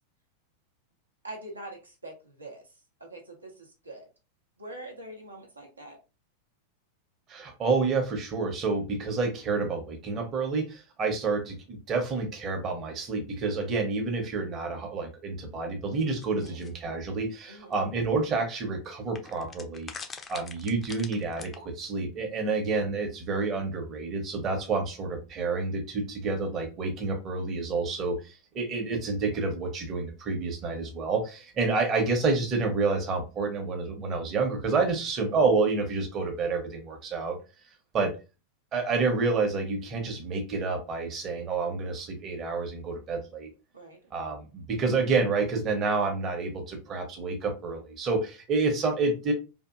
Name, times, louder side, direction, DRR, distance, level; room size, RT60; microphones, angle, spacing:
voice 1, 1.2-2.6 3.0-4.1 4.6-6.0 16.3-16.6 17.5-17.8 22.4-22.7 43.7-44.0, right 1 dB, 80° right, 1 dB, 0.7 m, -44 dB
voice 2, 7.3-19.9 20.3-37.4 37.9-38.1 38.7-43.5 44.1-49.3, right 4 dB, 30° right, 4 dB, 0.8 m, -29 dB
sound 1, 16.0-16.7 17.7-17.8 18.0-18.1 19.2-21.6, left 5 dB, 20° left, 0.4 m, -43 dB
2.7 x 2.4 x 2.3 m, 0.30 s
figure-of-eight pair, 90°, 0 cm